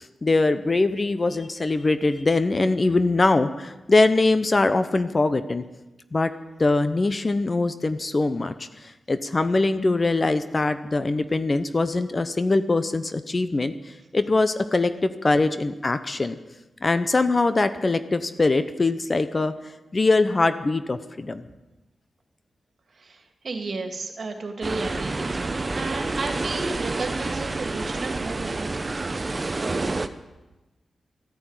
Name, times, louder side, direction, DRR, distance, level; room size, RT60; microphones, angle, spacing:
voice 1, 0.2-5.6 6.1-6.3 6.6-8.5 9.1-13.7 14.1-16.4 16.8-19.5 19.9-21.4, left 3 dB, 35° left, 11 dB, 0.9 m, -22 dB
voice 2, 22.9-28.7 29.6-30.0, right 3 dB, 55° right, 4 dB, 2.4 m, -33 dB
sound 1, 24.6-30.1, right 3 dB, 35° right, 0.9 m, -29 dB
14.0 x 10.0 x 9.0 m, 1.0 s
cardioid pair, 75°, 0 cm